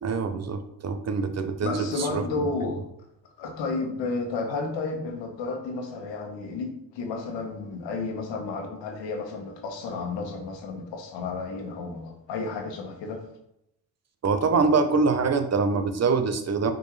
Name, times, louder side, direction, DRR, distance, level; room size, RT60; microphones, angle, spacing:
voice 1, 0.0-2.2 14.2-16.7, right 4 dB, 35° right, 8 dB, 0.9 m, -24 dB
voice 2, 1.6-2.8 3.4-13.2, left 3 dB, 70° left, 2 dB, 1.6 m, -32 dB
6.2 x 4.6 x 3.3 m, 0.81 s
supercardioid pair, 70°, 45 cm